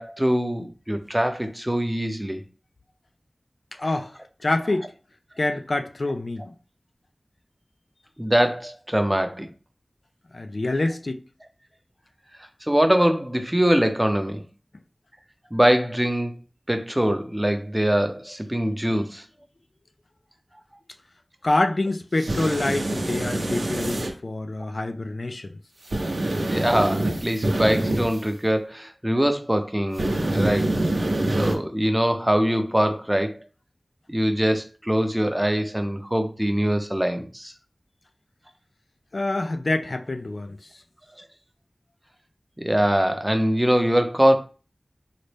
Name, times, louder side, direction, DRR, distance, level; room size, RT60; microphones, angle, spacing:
voice 1, 0.0-2.4 8.2-9.5 12.7-14.4 15.5-16.3 16.7-19.2 24.6-24.7 26.5-30.7 31.0-31.1 31.4-33.4 34.1-37.5 42.6-44.4, equal, 15° right, 0.6 m, -23 dB
voice 2, 3.8-4.9 5.4-6.5 10.3-11.2 21.4-25.5 39.1-40.6, left 2 dB, 65° left, 0.3 m, -26 dB
sound 1, 22.2-24.1 25.9-28.2 30.0-31.6, right 1 dB, 90° right, 0.6 m, -25 dB
4.0 x 2.1 x 3.2 m
wide cardioid pair, 45°, 0 cm